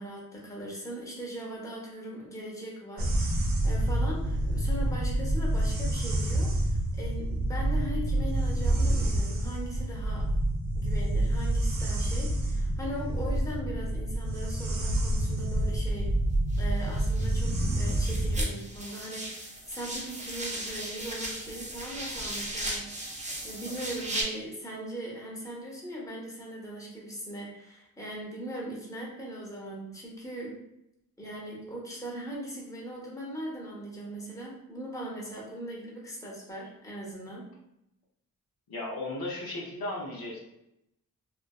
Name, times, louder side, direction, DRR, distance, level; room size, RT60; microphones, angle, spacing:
voice 1, 0.0-10.3 10.7-16.2 16.6-30.6 31.2-37.5, right 1 dB, 10° left, -4 dB, 0.8 m, -40 dB
sound 1, 3.0-18.4, right 1 dB, 70° right, 0.5 m, -28 dB
sound 2, 16.5-17.6 17.9-24.2, right 1 dB, 20° right, 0.6 m, -37 dB
voice 2, 38.7-40.4, left 2 dB, 80° left, -3 dB, 0.7 m, -35 dB
2.5 x 2.1 x 2.3 m, 0.83 s
cardioid pair, 65°, 35 cm